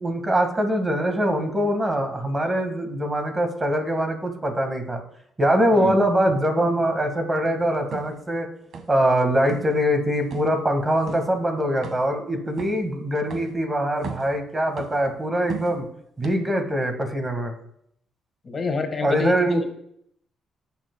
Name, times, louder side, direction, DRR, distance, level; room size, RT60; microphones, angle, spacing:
voice 1, 0.0-5.0 5.4-8.5 8.9-15.8 16.2-17.6 19.0-19.6, equal, 20° right, 5 dB, 1.6 m, -23 dB
sound 1, 7.9-8.1 8.7-9.1 9.4-9.7 10.3-10.6 11.1-11.3 11.8-12.2 12.6-12.9 13.3-13.6 13.9-14.4 14.8-15.1 15.5-15.8 16.2-16.3, right 6 dB, 65° right, 1.4 m, -36 dB
voice 2, 18.4-19.6, left 4 dB, 40° left, 6 dB, 1.5 m, -28 dB
17.0 x 7.1 x 2.2 m, 0.73 s
cardioid pair, 90°, 0 cm